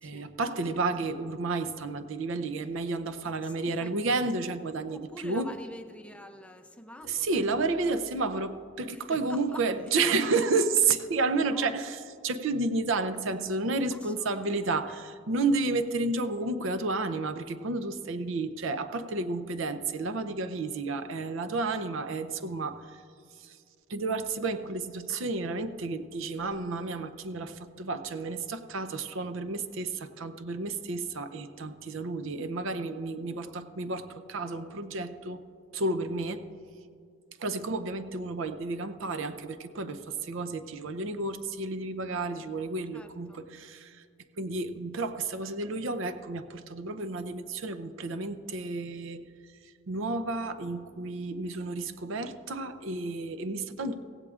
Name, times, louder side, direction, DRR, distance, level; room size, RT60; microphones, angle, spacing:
voice 1, 0.0-5.5 7.0-23.0 23.4-23.6 23.9-35.4 35.7-36.4 37.4-44.0 44.4-49.3 49.6-53.9, right 3 dB, 65° right, 11 dB, 0.6 m, -31 dB
voice 2, 3.2-4.0 4.9-7.9 8.9-9.6 11.3-11.7 13.9-15.0 33.3-33.6 42.9-43.4, left 1 dB, 5° left, 6 dB, 0.5 m, -47 dB
16.5 x 16.5 x 2.5 m, 2.3 s
head